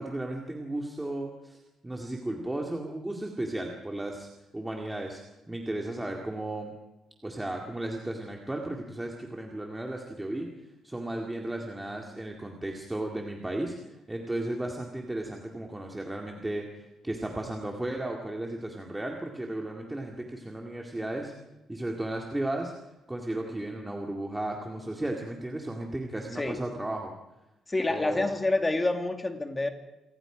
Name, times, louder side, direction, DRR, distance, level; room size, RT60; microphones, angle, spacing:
voice 1, 0.0-1.6 1.8-4.3 4.5-5.2 5.5-6.7 7.2-10.5 10.8-21.3 21.7-22.7 23.1-27.1 27.9-28.3, right 1 dB, 10° right, 1 dB, 2.2 m, -34 dB
voice 2, 27.7-29.7, left 2 dB, 15° left, 5 dB, 2.2 m, -27 dB
28.5 x 24.0 x 5.1 m, 1.0 s
cardioid pair, 170°, 0 cm